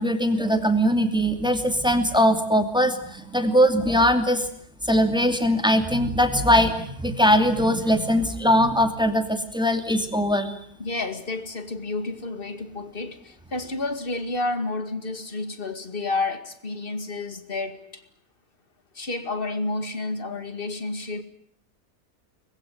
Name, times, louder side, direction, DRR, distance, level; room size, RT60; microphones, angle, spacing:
voice 1, 0.0-4.5 4.8-10.6, equal, 5° right, 7 dB, 2.6 m, -21 dB
voice 2, 10.8-18.1 18.9-21.2, left 3 dB, 35° left, 10 dB, 2.3 m, -30 dB
24.0 x 21.0 x 9.3 m, 0.68 s
omnidirectional pair, 1.6 m